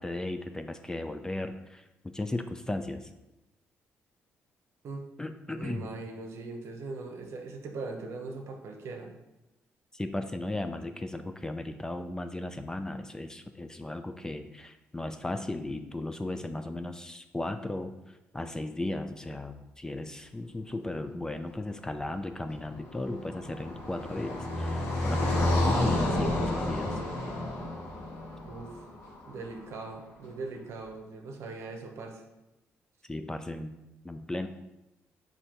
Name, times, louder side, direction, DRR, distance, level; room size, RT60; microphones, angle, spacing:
voice 1, 0.0-3.1 5.2-5.9 9.9-17.9 18.3-27.0 33.1-33.8 34.0-34.5, left 2 dB, 15° left, 8 dB, 0.3 m, -36 dB
voice 2, 5.6-9.1 28.4-28.9 29.3-32.2, right 3 dB, 65° right, 3 dB, 0.7 m, -40 dB
Car passing by, 22.4-29.6, left 1 dB, 85° left, 1.1 m, -30 dB
4.3 x 2.7 x 4.3 m, 0.98 s
cardioid pair, 85°, 5 cm